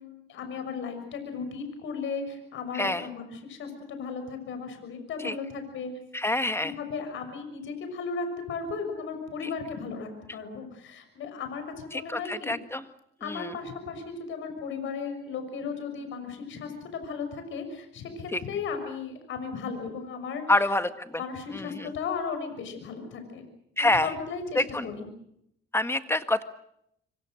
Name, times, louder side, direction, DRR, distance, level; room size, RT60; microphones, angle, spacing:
voice 1, 0.0-5.9 6.6-12.5 13.2-20.7 21.2-23.4 23.8-25.1, left 5 dB, 75° left, 7 dB, 6.4 m, -36 dB
voice 2, 6.1-6.7 11.9-12.0 12.3-12.8 13.3-13.4 18.3-18.4 20.5-20.9 23.8-24.1 24.6-24.9 25.7-26.4, left 2 dB, 10° left, 10 dB, 1.7 m, -25 dB
27.0 x 24.5 x 6.5 m, 0.74 s
cardioid pair, 90°, 20 cm